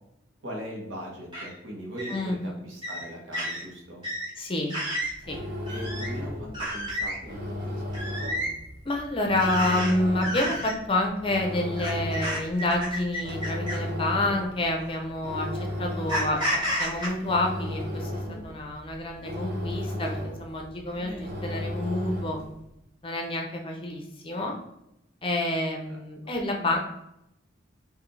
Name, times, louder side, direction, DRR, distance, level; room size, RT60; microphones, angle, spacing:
voice 1, 0.4-4.0 5.7-8.4 20.9-21.3 25.9-26.0 26.2-26.3, equal, 70° right, -1 dB, 1.3 m, -40 dB
sound 1, 1.3-1.5 2.0-2.2 2.8-3.0 3.3-3.6 4.0-4.3 4.7-5.1 5.7-6.1 6.5-7.1 7.9-8.5 9.4-9.9 10.2-10.7 11.8-13.9 14.8-14.9 16.1-17.1, equal, 20° right, 1.4 m, -31 dB
voice 2, 2.1-2.6 4.4-4.7 5.3-5.4 8.9-18.1 18.4-22.4 23.0-24.5 25.2-26.8, left 1 dB, 25° left, 2 dB, 0.5 m, -28 dB
sound 2, 5.0-22.6, left 1 dB, 50° right, 1.0 m, -35 dB
4.8 x 2.6 x 3.2 m, 0.82 s
head